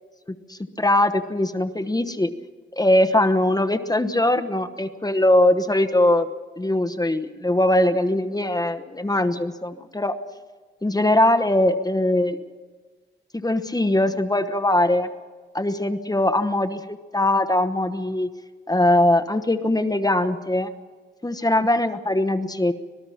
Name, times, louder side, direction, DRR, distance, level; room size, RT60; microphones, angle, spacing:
voice 1, 0.5-2.3 2.8-6.3 6.6-10.2 10.8-12.4 13.3-15.1 15.5-18.3 18.7-20.7 21.2-22.7, left 1 dB, 20° left, 8 dB, 1.1 m, -21 dB
25.5 x 19.0 x 5.7 m, 1.4 s
wide cardioid pair, 100°, 20 cm